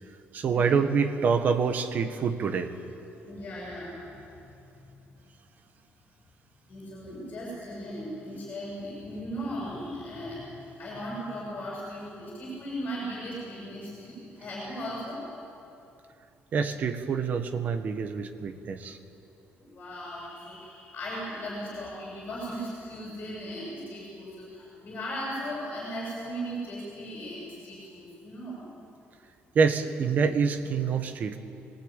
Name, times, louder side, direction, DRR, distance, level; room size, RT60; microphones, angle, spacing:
voice 1, 0.3-2.7 16.5-19.0 29.5-31.4, right 5 dB, 40° right, 7 dB, 1.5 m, -26 dB
voice 2, 3.2-4.2 6.7-10.4 10.8-15.2 19.6-28.7, equal, 35° left, -5 dB, 7.5 m, -37 dB
27.0 x 20.0 x 9.2 m, 2.7 s
cardioid pair, 180°, 4 cm